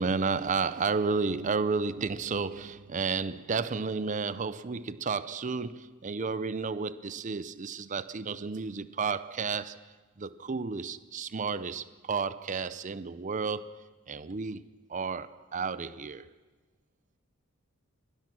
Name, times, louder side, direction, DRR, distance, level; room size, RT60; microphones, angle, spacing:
voice 1, 0.0-9.8 10.2-13.7 14.1-14.6 14.9-16.3, right 4 dB, 35° right, 0.5 m, -32 dB
24.5 x 18.5 x 6.1 m
head